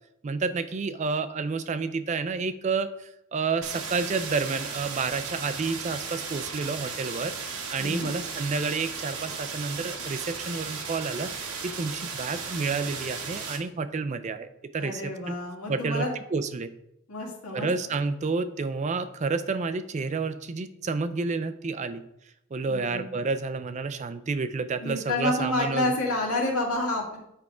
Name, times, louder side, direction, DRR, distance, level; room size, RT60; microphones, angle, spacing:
voice 1, 0.2-7.3 7.7-15.4 15.7-16.7 17.5-22.0 22.5-25.9, right 4 dB, 30° right, 11 dB, 0.3 m, -30 dB
sound 1, 3.6-13.6, right 5 dB, 80° right, 1.2 m, -36 dB
voice 2, 7.8-8.1 14.8-16.1 17.1-17.7 22.7-23.2 24.8-27.2, left 2 dB, 80° left, 0 dB, 1.8 m, -29 dB
8.2 x 3.5 x 4.8 m, 0.81 s
head